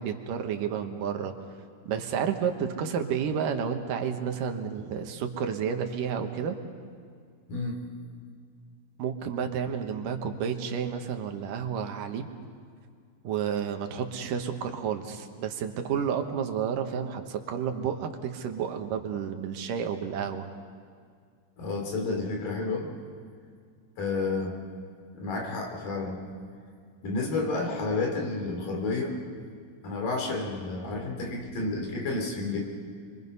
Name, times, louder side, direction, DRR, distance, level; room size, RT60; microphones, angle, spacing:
voice 1, 0.0-1.3 1.9-6.5 9.0-12.3 13.2-20.5, right 7 dB, 90° right, 5 dB, 3.0 m, -31 dB
voice 2, 7.5-7.8 21.6-22.9 24.0-24.6 25.1-26.2 27.0-29.2 29.8-32.6, left 3 dB, 90° left, 1 dB, 4.8 m, -30 dB
29.5 x 23.0 x 5.5 m, 2.1 s
omnidirectional pair, 3.7 m